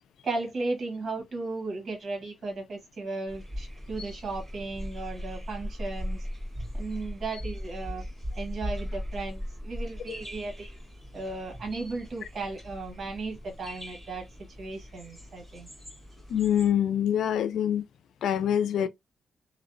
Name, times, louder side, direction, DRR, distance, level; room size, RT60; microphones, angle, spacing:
voice 1, 0.2-6.3 6.7-8.0 8.4-10.8 11.1-14.3 14.6-15.7, right 3 dB, 55° right, 1.1 m, -35 dB
sound 1, 3.3-16.7, equal, 10° right, 1.4 m, -39 dB
voice 2, 16.3-17.8 18.2-18.9, left 9 dB, 90° left, 0.3 m, -25 dB
2.6 x 2.0 x 2.5 m
cardioid pair, 130°, 0 cm